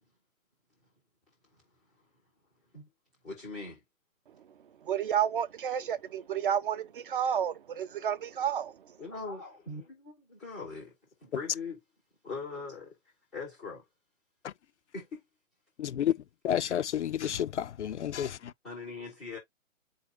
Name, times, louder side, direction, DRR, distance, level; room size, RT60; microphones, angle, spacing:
voice 1, 3.2-3.8 9.0-10.9 11.2-11.8 12.2-13.0 13.3-13.8 14.9-15.2 16.6-16.8 18.6-19.4, left 4 dB, ahead, 0.4 m, -41 dB
voice 2, 4.8-8.7, right 9 dB, 40° right, 0.6 m, -30 dB
voice 3, 15.8-16.1 16.4-18.5, left 10 dB, 60° left, 0.5 m, -30 dB
4.4 x 2.4 x 4.7 m
figure-of-eight pair, 135°, 40 cm